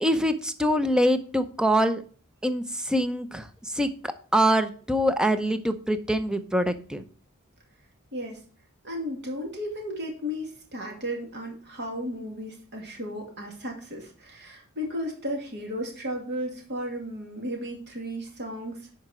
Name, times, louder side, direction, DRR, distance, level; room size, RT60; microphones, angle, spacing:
voice 1, 0.0-2.0 2.4-7.0, equal, 5° right, 9 dB, 0.7 m, -24 dB
voice 2, 8.8-18.9, equal, 50° right, 1 dB, 2.5 m, -34 dB
10.5 x 5.0 x 4.4 m, 0.42 s
head